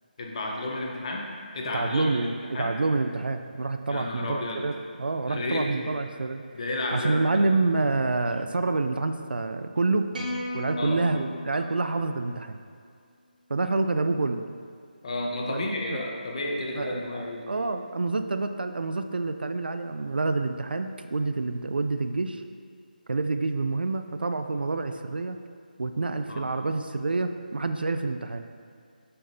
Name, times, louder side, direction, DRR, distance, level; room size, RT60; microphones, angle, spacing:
voice 1, 0.2-1.3 1.5-2.8 3.9-4.6 5.2-5.9 6.5-7.4 10.8-11.0 15.0-17.4 26.3-26.4, left 2 dB, 40° left, -1 dB, 0.9 m, -32 dB
voice 2, 1.7-4.7 5.0-6.4 6.9-10.1 10.5-12.6 13.5-14.4 15.5-15.6 15.9-16.0 16.7-22.4 23.1-25.4 25.8-28.5, right 3 dB, 85° right, 8 dB, 0.4 m, -27 dB
sound 1, 10.1-12.5, left 1 dB, 60° right, 1.3 m, -36 dB
7.6 x 5.9 x 2.7 m, 2.2 s
figure-of-eight pair, 165°, 5 cm